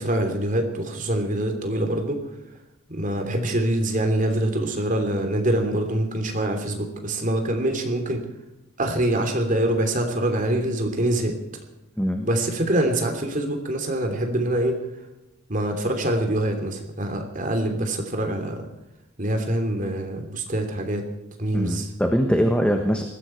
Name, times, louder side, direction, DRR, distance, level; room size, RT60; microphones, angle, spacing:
voice 1, 0.0-2.2 2.9-8.2 8.8-11.3 12.2-14.8 15.5-18.7 19.2-21.0 21.4-21.9, right 1 dB, 35° right, 4 dB, 3.0 m, -24 dB
voice 2, 12.0-12.3 21.5-23.0, equal, 5° left, 4 dB, 1.2 m, -22 dB
20.5 x 15.5 x 4.6 m, 0.96 s
head